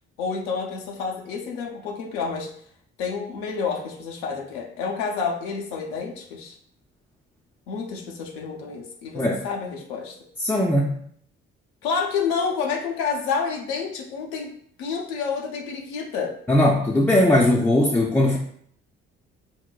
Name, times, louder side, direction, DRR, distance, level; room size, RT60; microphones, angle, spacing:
voice 1, 0.2-2.5 3.0-6.6 7.7-10.1 11.8-14.5 14.8-16.3, left 5 dB, 85° left, 0 dB, 0.6 m, -29 dB
voice 2, 10.4-11.0 16.5-18.4, left 1 dB, 5° left, -2 dB, 0.4 m, -19 dB
4.5 x 2.1 x 2.2 m, 0.63 s
hypercardioid pair, 50°, 32 cm